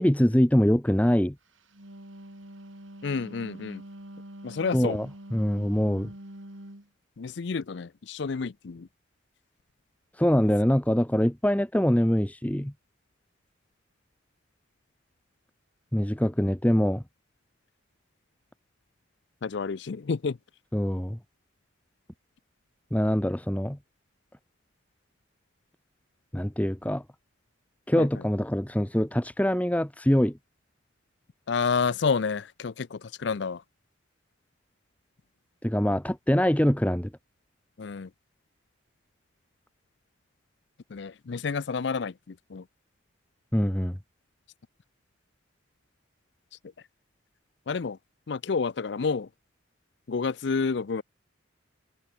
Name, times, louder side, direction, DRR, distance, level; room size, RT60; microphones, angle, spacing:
voice 1, 0.0-1.3 4.7-6.1 10.2-12.7 15.9-17.0 20.7-21.2 22.9-23.8 26.3-27.0 27.9-30.4 35.6-37.1 43.5-44.0, equal, 5° left, 1.0 m, -24 dB
Wind instrument woodwind instrument, 1.6-6.9, right 1 dB, 90° right, 4.0 m, -45 dB
voice 2, 3.0-3.8 4.4-5.0 7.2-8.9 19.4-20.4 28.0-28.1 31.5-33.6 37.8-38.1 40.9-42.6 47.7-48.0 48.3-49.3 50.1-51.0, left 5 dB, 60° left, 0.5 m, -29 dB
head